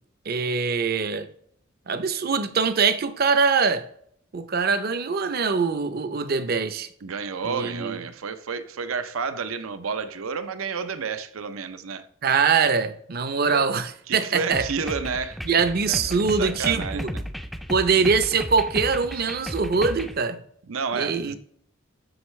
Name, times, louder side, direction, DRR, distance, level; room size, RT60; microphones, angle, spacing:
voice 1, 0.3-1.3 1.9-3.8 4.3-6.9 7.4-8.0 12.2-14.7 15.4-17.1 17.7-20.4 20.9-21.4, right 5 dB, 45° right, 0.6 m, -23 dB
voice 2, 7.0-12.0 13.4-13.7 14.1-15.4 15.9-17.0 20.7-21.4, right 5 dB, 85° right, 0.6 m, -30 dB
sound 1, 14.5-20.2, equal, ahead, 0.4 m, -34 dB
7.9 x 6.5 x 3.2 m
head